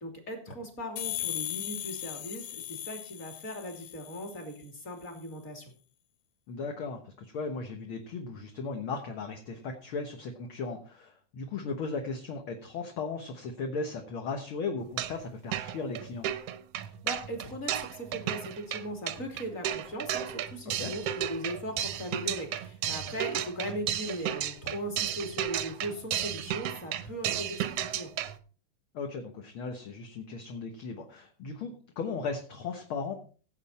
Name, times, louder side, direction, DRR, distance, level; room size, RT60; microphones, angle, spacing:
voice 1, 0.0-5.7 16.8-28.1, equal, 25° left, 3 dB, 3.0 m, -39 dB
sound 1, 1.0-4.5, left 14 dB, 75° left, 1.2 m, -38 dB
voice 2, 6.5-16.3 20.8-20.9 23.1-23.2 28.9-33.1, left 4 dB, 55° left, 4 dB, 1.8 m, -36 dB
sound 2, 14.8-15.3 15.5-28.4, right 10 dB, 70° right, 1.5 m, -34 dB
16.5 x 7.9 x 4.3 m, 0.40 s
omnidirectional pair, 3.4 m